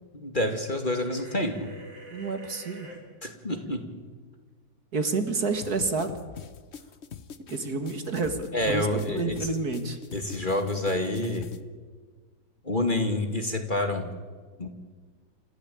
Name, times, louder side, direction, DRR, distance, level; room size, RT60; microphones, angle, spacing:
voice 1, 0.1-1.7 3.2-4.0 8.5-9.5 10.1-11.5 12.6-14.0 14.6-14.7, left 1 dB, 25° left, 5 dB, 2.3 m, -28 dB
sound 1, 0.9-3.0, equal, 75° right, 5.1 m, -45 dB
voice 2, 2.1-2.9 4.9-6.2 7.5-10.0, right 3 dB, 55° right, 8 dB, 2.4 m, -29 dB
sound 2, 5.6-11.6, left 6 dB, 45° left, 1.0 m, -43 dB
28.0 x 15.0 x 8.6 m, 1.5 s
omnidirectional pair, 2.0 m